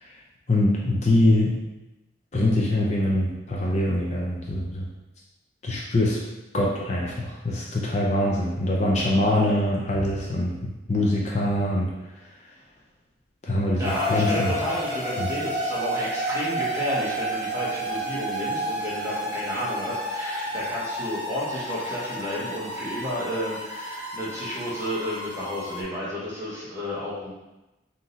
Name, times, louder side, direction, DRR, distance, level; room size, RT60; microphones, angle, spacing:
voice 1, 0.5-1.6 2.3-4.9 5.6-6.2 6.5-11.9 13.4-14.5 15.2-15.3, left 1 dB, 40° left, -3 dB, 0.5 m, -23 dB
voice 2, 13.8-27.3, equal, 15° right, -8 dB, 1.2 m, -31 dB
sound 1, 13.8-25.8, equal, 40° right, 1.0 m, -31 dB
3.8 x 2.8 x 3.9 m, 1.0 s
head